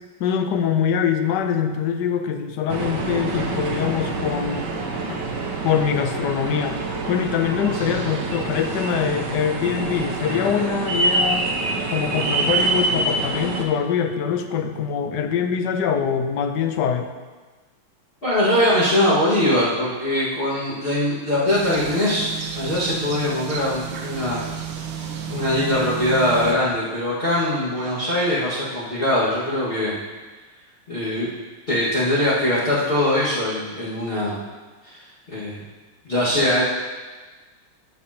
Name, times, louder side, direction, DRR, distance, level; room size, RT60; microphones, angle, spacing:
voice 1, 0.2-4.7 5.1-5.2 5.6-6.8 7.1-11.6 11.9-17.1, left 7 dB, 70° left, 6 dB, 1.2 m, -23 dB
sound 1, 2.7-13.7, right 2 dB, 65° right, 1.5 m, -26 dB
voice 2, 18.2-22.3 22.5-24.4 25.3-29.9 30.9-31.3 31.7-34.4 34.8-35.6 36.1-36.6, left 1 dB, 30° left, -10 dB, 1.9 m, -22 dB
sound 2, 21.5-26.5, right 8 dB, 80° right, 1.6 m, -32 dB
12.5 x 7.4 x 2.9 m, 1.3 s
omnidirectional pair, 2.2 m